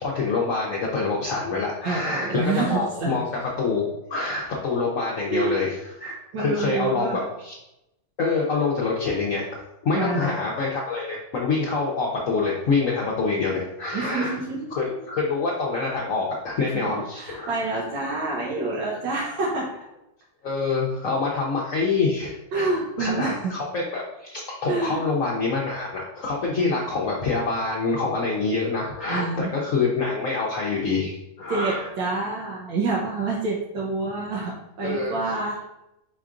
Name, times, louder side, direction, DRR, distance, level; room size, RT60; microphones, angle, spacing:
voice 1, 0.0-3.3 3.6-7.5 8.2-14.3 14.7-17.5 20.4-22.7 23.0-31.9 34.8-35.2, left 4 dB, 60° left, -3 dB, 0.9 m, -26 dB
voice 2, 1.8-3.2 5.3-5.6 6.3-7.3 9.9-10.3 13.9-14.7 16.7-19.7 22.5-23.5 24.6-25.0 29.1-29.5 31.5-35.6, right 3 dB, 90° right, -5 dB, 1.5 m, -27 dB
4.6 x 4.5 x 2.5 m, 0.88 s
omnidirectional pair, 2.0 m